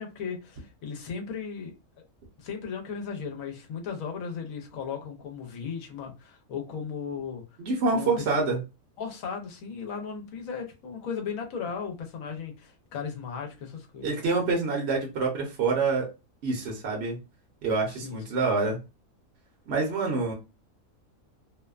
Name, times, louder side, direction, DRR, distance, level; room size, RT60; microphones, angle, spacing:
voice 1, 0.0-1.7 2.4-7.4 7.9-8.5 9.0-14.2 17.9-18.4, left 6 dB, 80° left, 1.1 m, -36 dB
voice 2, 7.6-8.6 14.0-16.1 16.4-17.2 17.6-18.8 19.7-20.3, right 4 dB, 60° right, 0.9 m, -26 dB
2.7 x 2.1 x 2.3 m
omnidirectional pair, 1.4 m